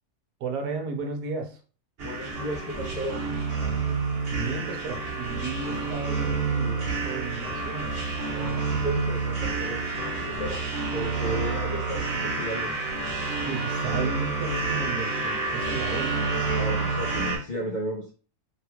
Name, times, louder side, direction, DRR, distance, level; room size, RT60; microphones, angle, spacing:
voice 1, 0.4-1.6 4.3-8.2 13.5-16.3, right 4 dB, 90° right, 4 dB, 1.3 m, -34 dB
voice 2, 2.0-3.2 8.3-12.7 16.5-18.1, equal, 90° left, -1 dB, 0.4 m, -34 dB
sound 1, 2.0-17.4, right 4 dB, 45° right, 1.0 m, -29 dB
3.5 x 2.3 x 2.8 m, 0.38 s
omnidirectional pair, 1.6 m